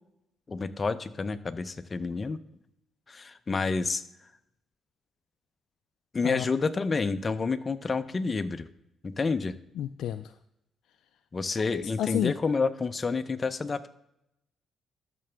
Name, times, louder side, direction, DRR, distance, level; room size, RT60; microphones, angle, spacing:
voice 1, 0.5-2.4 3.1-4.0 6.1-8.7 9.0-9.5 11.3-13.9, left 4 dB, 30° left, 12 dB, 0.6 m, -29 dB
voice 2, 9.8-10.3 11.7-12.3, left 11 dB, 80° left, 9 dB, 0.3 m, -30 dB
12.5 x 6.8 x 3.4 m, 0.83 s
cardioid pair, 90°, 0 cm